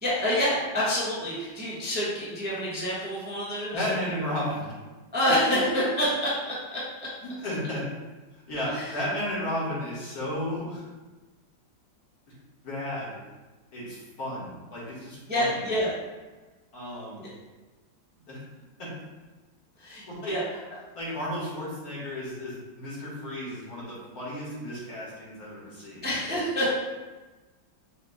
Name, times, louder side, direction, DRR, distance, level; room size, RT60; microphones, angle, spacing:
voice 1, 0.0-4.2 5.1-7.1 8.7-9.0 15.3-15.9 17.2-17.3 19.8-20.4 26.0-26.7, equal, 10° right, -8 dB, 0.4 m, -27 dB
voice 2, 3.7-4.7 7.2-7.8 8.5-10.8 12.6-13.1 13.7-15.7 16.7-17.2 18.3-18.4 18.8-18.9 20.1-20.3 21.0-26.1, left 1 dB, 55° left, -7 dB, 1.8 m, -33 dB
5.1 x 2.2 x 3.8 m, 1.2 s
omnidirectional pair, 2.0 m